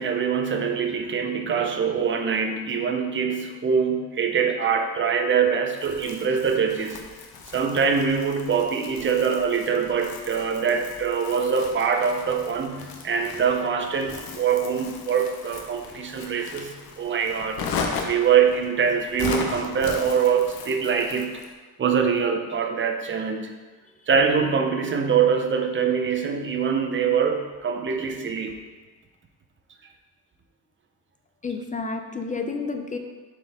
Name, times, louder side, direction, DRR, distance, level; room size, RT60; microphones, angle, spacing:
voice 1, 0.0-7.0 7.5-17.6 18.0-21.4 21.8-23.6 24.1-28.6, right 6 dB, 30° right, 4 dB, 0.6 m, -24 dB
Crumpling crinkling, 5.7-21.5, left 5 dB, 70° left, 0.9 m, -37 dB
voice 2, 31.4-33.0, left 4 dB, 20° left, 5 dB, 0.4 m, -30 dB
7.5 x 4.5 x 3.5 m, 1.3 s
cardioid pair, 155°, 38 cm